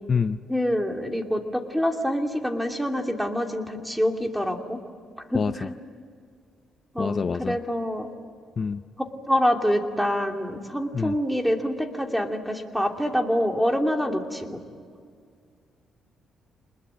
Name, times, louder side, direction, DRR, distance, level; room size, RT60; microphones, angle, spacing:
voice 1, 0.5-4.8 5.3-5.7 6.9-8.1 9.0-14.6, equal, ahead, 4 dB, 2.7 m, -26 dB
voice 2, 7.0-7.6 8.6-8.8 10.9-11.1, left 5 dB, 40° left, 11 dB, 0.5 m, -25 dB
27.0 x 21.0 x 8.8 m, 2.1 s
cardioid pair, 90°, 0 cm